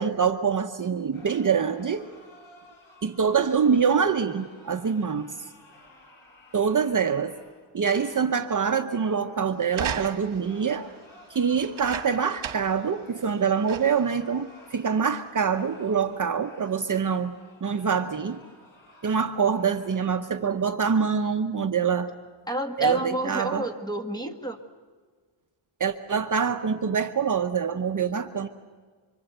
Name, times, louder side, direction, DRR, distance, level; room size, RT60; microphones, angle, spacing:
voice 1, 0.0-2.1 3.0-5.3 6.5-7.3 7.7-10.9 11.3-17.4 17.6-18.4 19.0-22.1 22.8-23.6 25.8-28.5, right 6 dB, 40° right, 6 dB, 0.9 m, -25 dB
sound 1, 1.1-9.6 10.3-20.3, left 1 dB, 75° left, 5.6 m, -54 dB
sound 2, 9.7-10.5 11.6-12.8 13.2-13.3 13.7-14.1 14.9-15.0, right 8 dB, 75° right, 1.7 m, -35 dB
voice 2, 22.5-24.6, right 2 dB, 10° left, 5 dB, 1.6 m, -29 dB
25.5 x 25.0 x 8.0 m, 1.5 s
wide cardioid pair, 170°, 48 cm